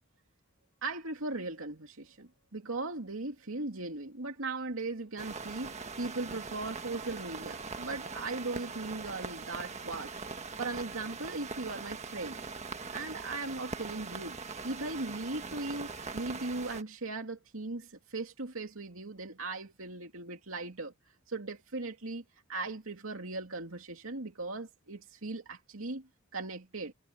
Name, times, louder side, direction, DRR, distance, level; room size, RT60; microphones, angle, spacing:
voice 1, 0.8-10.2 10.6-12.4 12.9-14.4 14.6-20.9 21.3-22.2 22.5-26.9, right 3 dB, 85° right, 2.5 m, -38 dB
sound 1, 5.2-16.8, right 4 dB, 35° right, 1.5 m, -42 dB
head